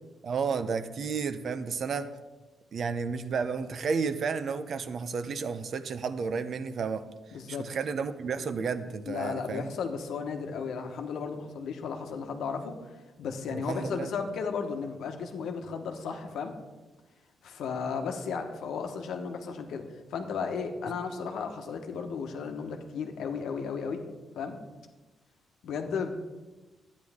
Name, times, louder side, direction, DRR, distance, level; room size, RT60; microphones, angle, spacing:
voice 1, 0.2-2.1 2.7-7.1 7.5-9.7 13.5-14.1, right 5 dB, 50° right, 11 dB, 0.5 m, -32 dB
voice 2, 7.3-7.7 8.4-8.5 9.0-12.8 13.2-16.6 17.4-19.8 20.1-24.0 24.3-24.6 25.6-26.1, left 5 dB, 85° left, 5 dB, 1.1 m, -34 dB
11.0 x 9.4 x 3.6 m, 1.2 s
wide cardioid pair, 155°, 0 cm